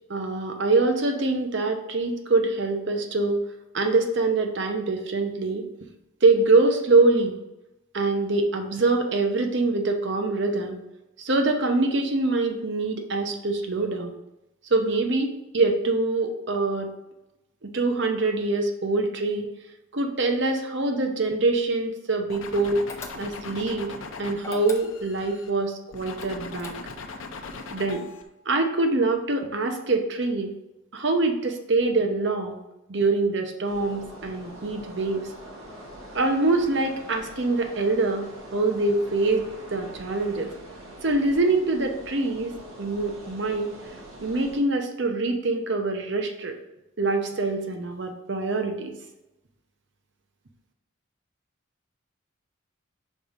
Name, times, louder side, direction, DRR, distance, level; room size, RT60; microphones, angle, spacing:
voice 1, 0.1-3.4 3.7-5.6 6.2-7.4 7.9-10.8 11.2-14.1 14.7-16.9 17.6-19.5 19.9-22.8 23.2-26.8 27.7-28.1 28.5-30.5 30.9-32.6 32.9-35.3 36.1-38.3 38.5-40.5 41.0-42.5 42.8-43.7 44.2-46.5 47.0-48.9, right 3 dB, 55° right, 5 dB, 0.8 m, -24 dB
sound 1, 22.3-25.5 25.9-28.2, left 4 dB, 75° left, 0.7 m, -39 dB
sound 2, 22.9-23.6 24.4-25.3 26.2-27.2, left 2 dB, 15° left, 0.5 m, -41 dB
sound 3, 33.6-44.6, right 1 dB, 90° right, 1.8 m, -44 dB
5.4 x 4.2 x 5.1 m, 0.93 s
head